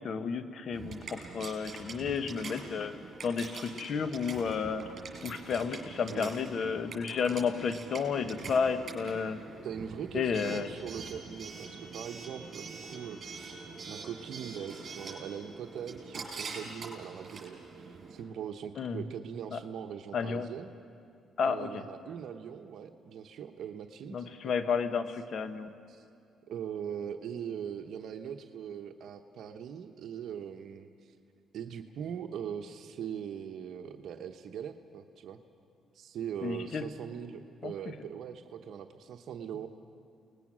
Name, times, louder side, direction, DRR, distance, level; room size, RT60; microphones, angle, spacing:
voice 1, 0.0-2.9 3.2-4.8 5.2-9.4 10.1-10.7 18.8-19.0 19.5-19.6 20.1-20.5 21.4-21.8 24.1-25.7 36.4-36.9 37.6-37.7, left 6 dB, 55° left, 10 dB, 1.3 m, -32 dB
Coin (dropping) / Alarm, 0.7-18.2, right 4 dB, 50° right, 5.9 m, -44 dB
voice 2, 9.6-20.7 21.4-24.5 25.9-26.0 26.5-31.1 31.5-35.4 35.9-39.7, right 8 dB, 70° right, 6 dB, 1.0 m, -41 dB
29.5 x 20.0 x 6.3 m, 2.3 s
cardioid pair, 90°, 0 cm